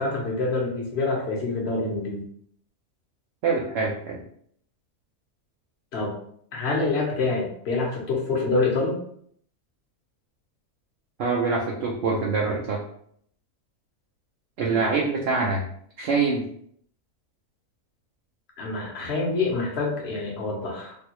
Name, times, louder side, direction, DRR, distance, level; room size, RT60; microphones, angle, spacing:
voice 1, 0.0-2.2 5.9-6.1 6.5-9.0 14.7-14.9 18.6-20.9, left 3 dB, 50° left, -1 dB, 1.0 m, -26 dB
voice 2, 3.4-4.2 11.2-12.8 14.6-15.6 16.0-16.4, right 4 dB, 65° right, -2 dB, 0.6 m, -24 dB
3.3 x 2.3 x 2.9 m, 0.65 s
omnidirectional pair, 1.5 m